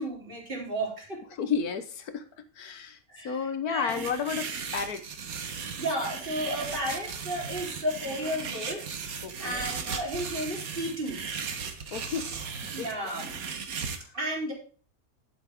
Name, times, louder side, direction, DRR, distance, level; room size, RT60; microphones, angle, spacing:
voice 1, 0.0-1.2 3.1-4.0 5.8-8.8 9.4-11.2 12.7-13.3 14.1-14.5, equal, 35° right, -2 dB, 3.8 m, -33 dB
voice 2, 1.3-2.2 2.6-3.0 3.2-4.5 4.7-5.0 9.2-9.7 11.9-12.9 14.0-14.1, left 6 dB, 85° left, 10 dB, 1.5 m, -32 dB
sound 1, 3.9-14.0, right 6 dB, 70° right, 1.6 m, -37 dB
12.5 x 7.6 x 3.6 m, 0.42 s
omnidirectional pair, 1.6 m